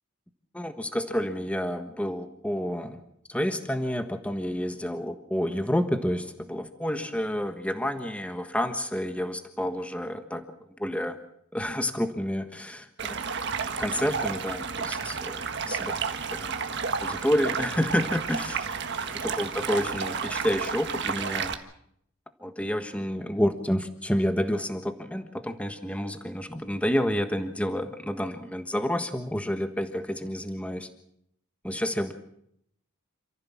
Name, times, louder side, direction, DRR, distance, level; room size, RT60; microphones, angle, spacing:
voice 1, 0.5-3.0 3.3-10.4 10.8-11.2 11.5-13.2 13.8-15.4 15.7-15.9 16.4-16.5 17.0-18.7 19.2-21.5 22.4-30.9 31.6-32.1, equal, 5° left, 8 dB, 1.4 m, -29 dB
Stream, 13.0-21.5, right 5 dB, 55° right, 1.6 m, -31 dB
28.0 x 15.0 x 7.3 m, 0.72 s
head